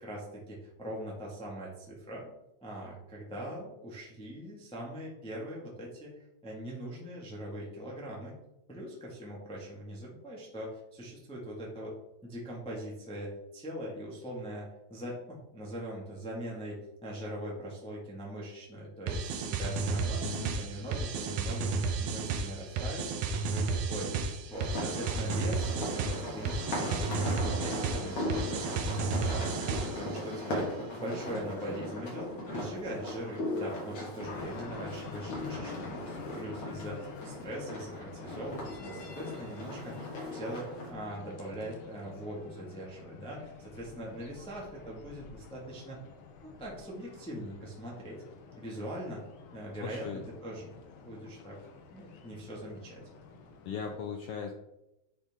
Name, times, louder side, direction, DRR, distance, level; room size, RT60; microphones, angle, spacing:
voice 1, 0.0-2.3 2.6-6.1 6.4-8.4 8.7-11.9 12.2-20.2 20.6-21.7 22.0-39.9 40.3-46.0 46.4-48.2 48.6-49.3 49.5-51.6 51.9-53.0, equal, 5° left, -3 dB, 0.7 m, -41 dB
sound 1, 19.1-30.1, right 4 dB, 85° right, 2.3 m, -32 dB
voice 2, 20.2-20.6 49.8-50.3 53.6-54.5, left 6 dB, 85° left, 2 dB, 1.2 m, -38 dB
sound 2, 24.5-40.9, left 1 dB, 55° left, 2.9 m, -38 dB
sound 3, 34.2-54.0, left 5 dB, 70° left, 1.4 m, -48 dB
9.7 x 4.1 x 3.6 m, 0.89 s
omnidirectional pair, 3.4 m